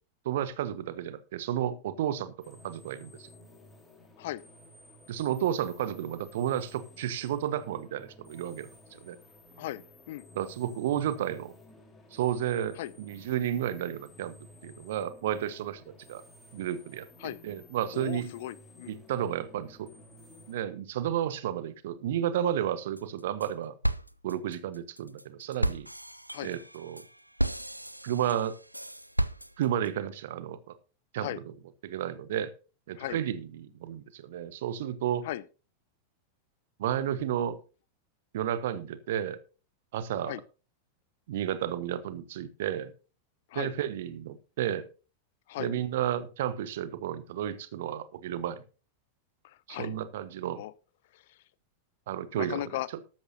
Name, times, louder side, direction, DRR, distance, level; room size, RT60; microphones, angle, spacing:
voice 1, 0.2-3.3 5.1-9.2 10.3-11.5 12.1-14.3 14.6-16.2 16.5-18.3 18.9-19.9 20.5-23.7 24.2-25.9 26.4-27.0 28.0-28.6 29.6-30.7 31.1-31.3 31.8-32.5 32.9-35.3 36.8-37.6 38.3-39.4 39.9-40.4 41.3-42.9 43.5-44.9 45.6-48.6 49.7-50.6 52.1-52.7, right 10 dB, 55° right, 1.2 m, -32 dB
sound 1, 2.4-20.5, left 1 dB, 15° left, 4.0 m, -54 dB
voice 2, 9.6-10.3 12.8-12.9 17.2-17.4 17.9-19.0 26.3-26.5 31.2-31.4 33.0-33.2 35.2-35.4 40.3-40.4 43.5-43.7 45.5-45.7 49.4-49.9 50.6-50.7 51.1-51.4 52.4-52.9, left 15 dB, 55° left, 0.7 m, -37 dB
sound 2, 23.0-23.5 23.8-29.9, right 1 dB, 90° right, 0.5 m, -33 dB
13.5 x 12.5 x 2.8 m
figure-of-eight pair, 90°, 0 cm